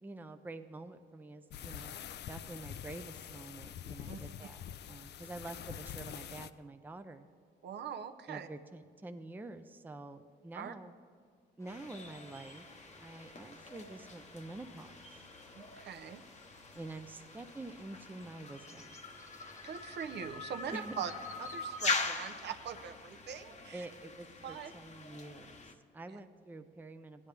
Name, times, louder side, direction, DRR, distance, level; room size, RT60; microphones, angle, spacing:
voice 1, 0.0-2.0 2.3-7.3 8.3-11.0 11.6-12.6 13.0-14.9 16.7-19.0 20.7-21.1 23.7-27.3, right 2 dB, 10° right, 8 dB, 0.5 m, -47 dB
sound 1, 1.5-6.5, left 9 dB, 60° left, 0.4 m, -45 dB
voice 2, 7.6-8.5 10.5-10.7 15.5-16.2 19.6-21.1 21.4-23.9 24.4-24.7 26.1-26.2, right 8 dB, 60° right, 8 dB, 0.7 m, -42 dB
sound 2, 11.6-22.0, left 1 dB, 15° left, 1.1 m, -59 dB
sound 3, 11.7-25.7, left 3 dB, 35° left, 0.9 m, -43 dB
16.0 x 9.8 x 3.3 m, 2.1 s
cardioid pair, 90°, 20 cm